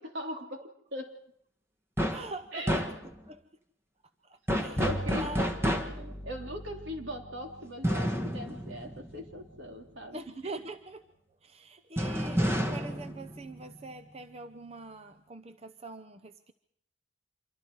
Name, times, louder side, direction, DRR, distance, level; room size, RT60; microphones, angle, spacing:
voice 1, 0.1-0.6 0.9-1.1 2.5-2.7 4.8-5.5 5.9-10.2, equal, 70° right, 3 dB, 3.4 m, -40 dB
sound 1, 2.0-2.3 2.7-3.3 4.5-6.1 7.8-9.7 12.0-14.1, equal, 15° right, 1.6 m, -30 dB
voice 2, 2.1-2.9 3.3-3.4 4.2-5.4 10.1-11.1 11.4-16.5, right 2 dB, 30° right, 9 dB, 0.8 m, -43 dB
Bowed string instrument, 4.8-10.4, equal, 30° left, 1.5 m, -42 dB
26.5 x 23.5 x 4.8 m, 0.72 s
head